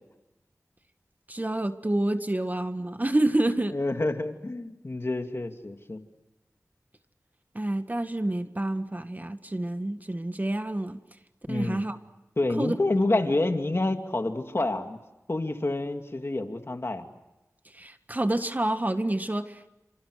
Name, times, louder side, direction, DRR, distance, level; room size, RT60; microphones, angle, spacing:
voice 1, 1.3-3.7 7.5-11.0 11.5-12.0 12.6-12.8 17.7-19.6, right 1 dB, 30° right, 9 dB, 1.5 m, -28 dB
voice 2, 3.7-6.0 11.5-11.8 12.4-15.0 15.3-17.1, left 2 dB, 45° left, 5 dB, 2.5 m, -28 dB
29.5 x 27.0 x 6.5 m, 0.99 s
wide cardioid pair, 70°, 6 cm